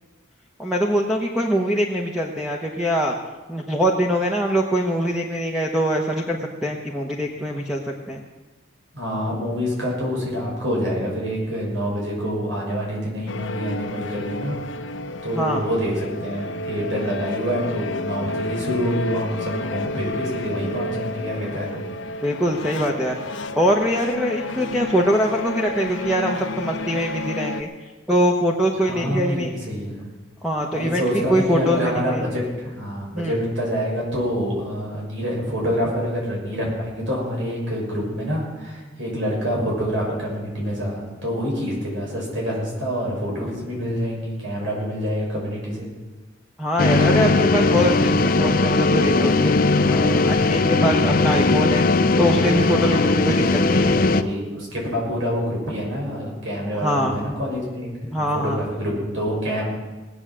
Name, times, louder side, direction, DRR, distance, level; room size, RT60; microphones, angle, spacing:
voice 1, 0.6-3.1 3.5-8.2 15.3-15.6 22.2-23.1 23.6-27.7 28.1-29.5 30.4-32.2 33.1-33.4 46.6-51.8 52.2-54.0 56.7-57.2 58.1-58.6, equal, 5° right, 0 dB, 1.0 m, -23 dB
voice 2, 8.9-14.6 15.2-21.8 28.8-30.0 30.7-45.9 52.8-53.1 54.1-57.9 58.2-59.6, equal, 75° right, -3 dB, 6.4 m, -26 dB
sound 1, 13.3-27.6, left 2 dB, 70° left, 0.8 m, -31 dB
sound 2, 46.8-54.2, left 3 dB, 45° left, 0.6 m, -18 dB
19.5 x 8.1 x 7.5 m, 1.2 s
head